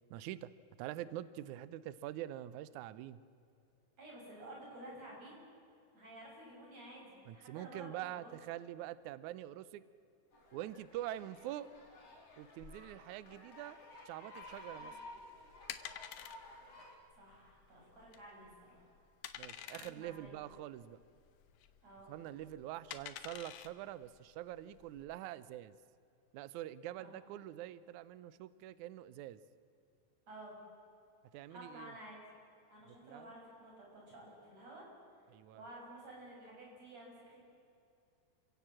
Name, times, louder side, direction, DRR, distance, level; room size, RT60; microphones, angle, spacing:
voice 1, 0.1-0.5 0.8-3.2 7.3-9.8 10.5-11.7 12.4-13.8 14.1-14.9 19.4-21.0 22.1-25.7 26.3-29.4 31.3-31.9 33.0-33.3 35.3-35.6, right 13 dB, 90° right, 16 dB, 1.7 m, -45 dB
voice 2, 4.0-5.5 5.9-8.4 14.8-15.0 17.1-18.9 19.7-20.4 21.8-22.1 27.0-27.2 30.3-30.6 31.5-32.2 32.7-34.9 35.5-37.4, right 1 dB, 45° right, -2 dB, 8.1 m, -52 dB
sound 1, 10.3-17.0, left 1 dB, 40° left, 4.1 m, -54 dB
sound 2, 14.4-25.1, left 11 dB, 70° left, 2.3 m, -50 dB
29.0 x 17.0 x 7.5 m, 2.6 s
omnidirectional pair, 4.3 m